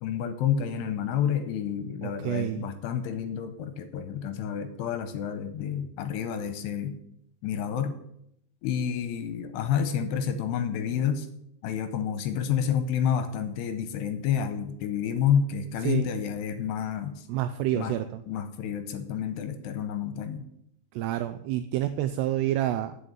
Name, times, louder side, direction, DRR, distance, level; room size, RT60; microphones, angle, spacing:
voice 1, 0.0-6.9 7.4-7.9 8.6-11.3 11.6-17.3 17.7-17.9 18.3-20.4, left 8 dB, 80° left, 9 dB, 2.6 m, -29 dB
voice 2, 2.0-2.7 15.8-16.1 17.3-18.2 20.9-23.0, right 13 dB, 85° right, 10 dB, 2.4 m, -28 dB
9.4 x 6.5 x 8.6 m, 0.75 s
omnidirectional pair, 5.3 m